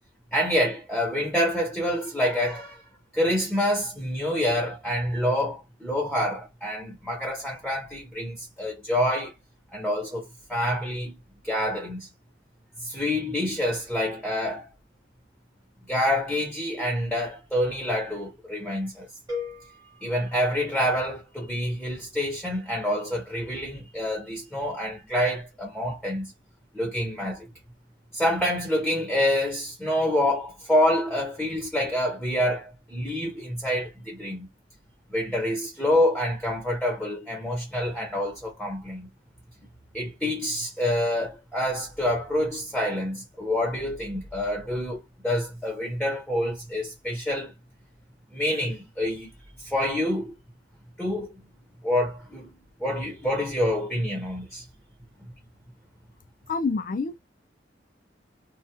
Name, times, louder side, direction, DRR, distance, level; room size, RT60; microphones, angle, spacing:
voice 1, 0.3-2.8 3.1-9.3 9.7-11.1 11.4-12.1 12.8-14.7 15.9-19.1 20.0-26.3 26.7-27.5 28.1-34.5 35.1-39.1 39.9-47.5 48.3-49.3 49.6-50.3 51.0-51.3 51.8-52.5 52.8-54.6, left 1 dB, ahead, 0.7 m, -27 dB
sound 1, 19.3-21.4, left 4 dB, 20° right, 1.0 m, -39 dB
voice 2, 56.5-57.2, left 4 dB, 50° left, 0.4 m, -27 dB
3.4 x 2.1 x 2.8 m
head